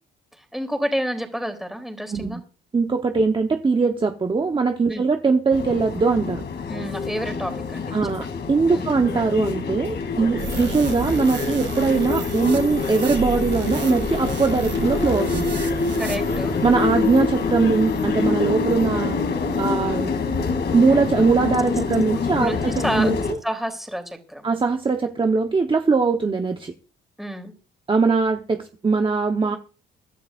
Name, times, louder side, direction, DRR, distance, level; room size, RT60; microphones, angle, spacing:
voice 1, 0.3-2.4 4.9-5.1 6.7-8.3 8.7-8.8 10.4-10.5 16.0-16.5 22.1-23.1 23.4-24.4 27.2-27.5, equal, ahead, 3.5 m, -29 dB
voice 2, 2.7-6.4 7.9-15.5 16.6-19.2 19.6-20.1 20.7-23.4 24.4-26.7 27.9-29.6, right 4 dB, 25° right, 1.1 m, -21 dB
sound 1, 5.5-23.3, left 5 dB, 60° left, 2.9 m, -26 dB
sound 2, 10.4-19.0 19.5-19.7, right 5 dB, 70° right, 3.3 m, -34 dB
23.5 x 12.0 x 2.6 m
cardioid pair, 90°, 20 cm